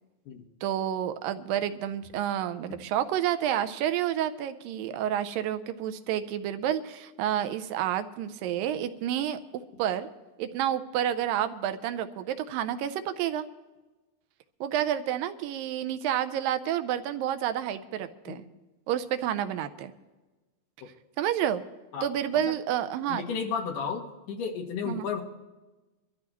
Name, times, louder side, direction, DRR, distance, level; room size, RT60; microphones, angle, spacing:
voice 1, 0.6-10.1 10.4-13.5 14.6-18.4 18.9-19.9 21.2-21.6 22.0-23.2 24.9-25.1, right 10 dB, 85° right, 10 dB, 2.4 m, -29 dB
voice 2, 23.1-24.0 24.3-25.2, left 6 dB, 70° left, 2 dB, 2.9 m, -32 dB
23.0 x 13.5 x 3.0 m, 1.2 s
omnidirectional pair, 4.0 m